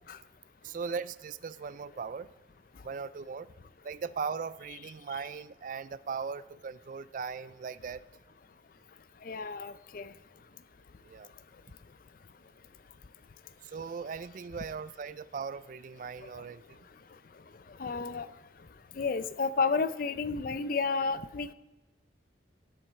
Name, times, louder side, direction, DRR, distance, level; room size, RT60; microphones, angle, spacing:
voice 1, 0.6-2.3 2.8-3.5 3.8-8.0 11.0-11.3 13.6-16.9, right 5 dB, 45° right, 16 dB, 0.3 m, -38 dB
voice 2, 9.2-10.1 17.8-18.3 19.0-21.5, left 4 dB, 50° left, 14 dB, 0.4 m, -31 dB
17.5 x 7.7 x 4.3 m, 1.0 s
head